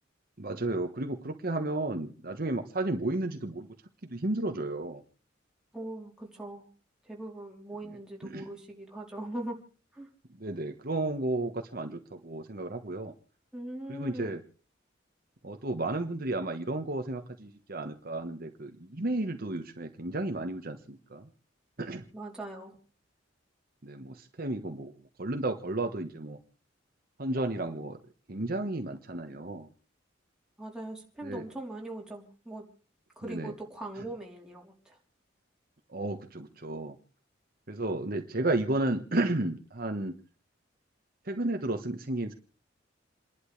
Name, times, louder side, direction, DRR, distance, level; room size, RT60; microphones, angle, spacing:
voice 1, 0.4-3.7 4.0-5.0 8.2-8.4 10.3-13.1 13.9-14.4 15.4-21.3 21.8-22.0 23.8-26.4 27.2-28.0 28.3-29.7 31.2-31.4 33.2-33.5 35.9-37.0 37.7-40.1 41.2-42.3, right 2 dB, 50° right, 5 dB, 1.3 m, -33 dB
voice 2, 5.7-6.7 7.0-9.6 9.9-10.1 13.5-14.4 22.1-22.8 30.6-32.6 33.2-35.0, right 1 dB, 5° right, -2 dB, 3.5 m, -41 dB
29.5 x 11.5 x 3.3 m, 0.37 s
head